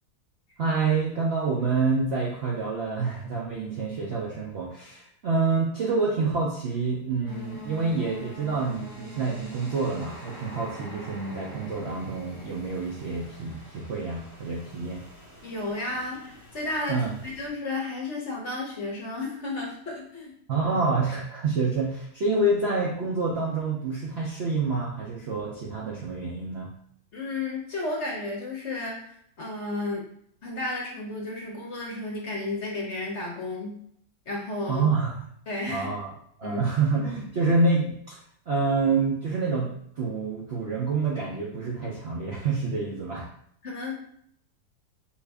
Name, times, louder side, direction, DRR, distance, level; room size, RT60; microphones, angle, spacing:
voice 1, 0.6-15.0 16.9-17.1 20.5-26.7 34.7-35.2 35.7-36.1 36.4-38.2 38.5-43.3, right 3 dB, 60° right, -4 dB, 0.7 m, -27 dB
sound 1, 7.2-17.5, equal, 20° right, 0.6 m, -45 dB
voice 2, 15.4-20.3 22.3-22.4 27.1-30.0 30.4-33.8 34.3-34.9 35.5-35.9 36.4-36.6 37.5-37.6 43.6-43.9, left 2 dB, 50° left, -2 dB, 0.9 m, -33 dB
4.6 x 2.6 x 3.3 m, 0.67 s
omnidirectional pair, 1.8 m